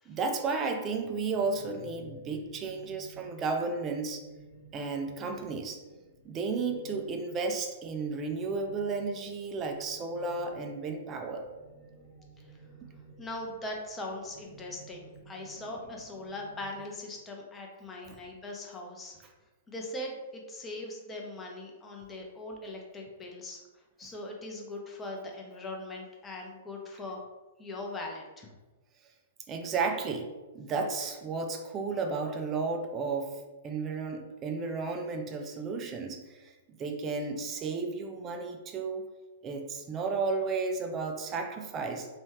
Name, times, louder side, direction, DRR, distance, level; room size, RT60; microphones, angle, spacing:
voice 1, 0.1-4.2 4.7-5.8 6.2-11.5 18.1-18.2 29.5-30.3 30.5-36.5 36.8-39.1 39.4-42.1, right 4 dB, 25° right, 4 dB, 0.3 m, -33 dB
sound 1, 0.9-16.8, right 2 dB, 35° left, 1.0 m, -54 dB
voice 2, 13.2-19.2 19.7-27.3 27.6-28.5, left 2 dB, 15° left, 0 dB, 0.6 m, -40 dB
3.1 x 2.3 x 3.0 m, 1.2 s
figure-of-eight pair, 105°, 0 cm